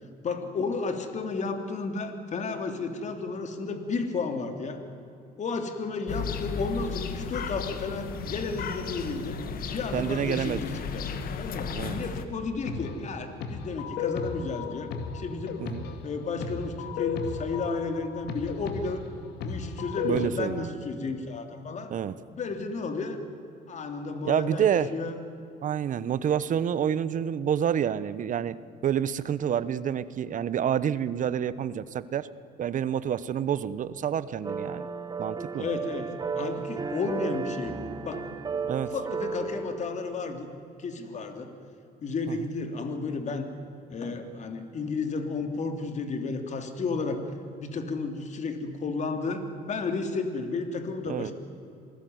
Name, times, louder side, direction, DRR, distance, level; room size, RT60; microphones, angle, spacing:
voice 1, 0.2-4.8 5.4-9.4 9.7-11.1 11.4-15.6 16.0-19.0 19.4-21.9 22.3-23.2 23.7-25.2 35.6-36.1 36.3-40.5 40.8-41.5 42.0-43.5 43.9-47.2 47.6-51.3, left 4 dB, 45° left, 7 dB, 3.3 m, -32 dB
sound 1, 6.1-12.3, left 5 dB, 60° left, 2.1 m, -34 dB
voice 2, 9.9-10.6 11.7-12.0 15.6-15.8 20.0-20.6 21.9-22.1 24.2-24.9 25.6-28.5 28.8-32.3 32.6-34.9 35.2-35.7 38.7-38.9 42.3-42.4 51.1-51.3, right 9 dB, 50° right, 16 dB, 1.0 m, -28 dB
sound 2, 12.7-20.3, left 6 dB, 80° left, 2.2 m, -35 dB
sound 3, 34.4-40.3, right 5 dB, 25° right, 1.1 m, -34 dB
27.5 x 19.5 x 9.5 m, 2.7 s
cardioid pair, 110°, 17 cm